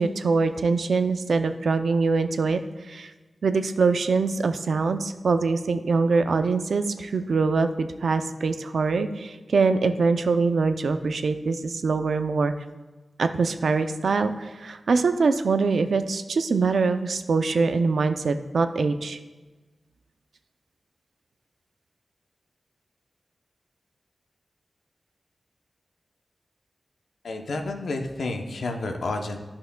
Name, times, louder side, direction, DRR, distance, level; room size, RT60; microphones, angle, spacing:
voice 1, 0.0-3.1 3.4-12.5 13.2-19.2, right 4 dB, 80° right, 9 dB, 0.4 m, -23 dB
voice 2, 27.2-29.4, left 2 dB, 90° left, 4 dB, 0.7 m, -30 dB
11.0 x 5.7 x 2.2 m, 1.2 s
cardioid pair, 45°, 0 cm